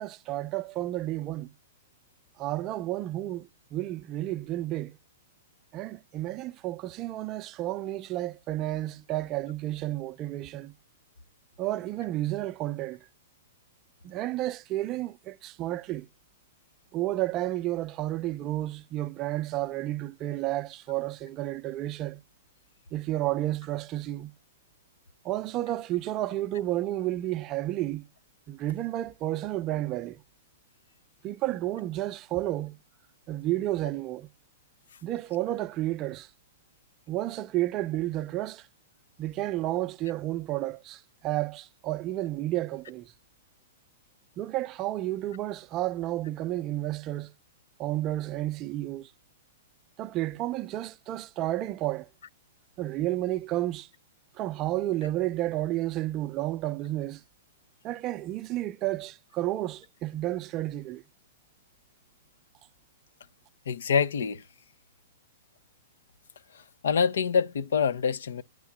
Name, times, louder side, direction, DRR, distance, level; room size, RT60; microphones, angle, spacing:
voice 1, 0.0-1.5 2.4-5.0 5.7-10.7 11.6-13.0 14.0-16.1 16.9-22.2 22.9-24.3 25.2-28.0 28.5-30.2 31.2-32.8 33.3-34.3 35.0-36.3 37.1-38.7 39.2-43.1 44.4-47.3 47.8-49.1 50.0-52.1 52.8-53.9 54.4-57.2 57.8-61.0, right 15 dB, 30° right, 0.5 m, -31 dB
voice 2, 63.7-64.4 66.8-68.4, left 6 dB, 80° left, 0.6 m, -25 dB
10.5 x 3.6 x 7.3 m
hypercardioid pair, 150°, 0 cm